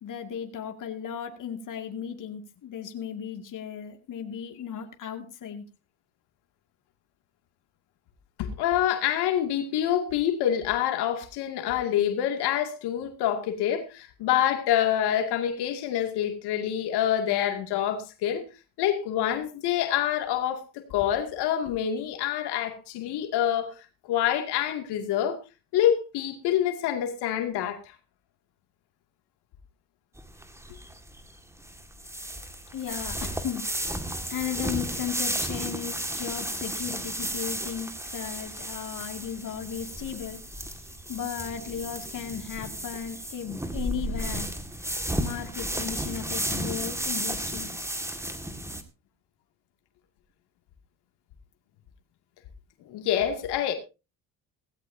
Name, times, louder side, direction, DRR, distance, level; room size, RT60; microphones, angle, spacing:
voice 1, 0.0-5.7 32.7-33.7 34.3-40.4 41.1-44.5 45.2-48.1, left 8 dB, 55° left, 2.4 m, -36 dB
voice 2, 8.4-18.4 18.8-20.6 20.9-23.7 24.1-25.4 25.7-27.8 52.9-53.7, left 10 dB, 85° left, 2.5 m, -26 dB
sound 1, 30.2-48.8, right 1 dB, 5° right, 1.9 m, -33 dB
17.0 x 16.0 x 2.8 m
cardioid pair, 100°, 39 cm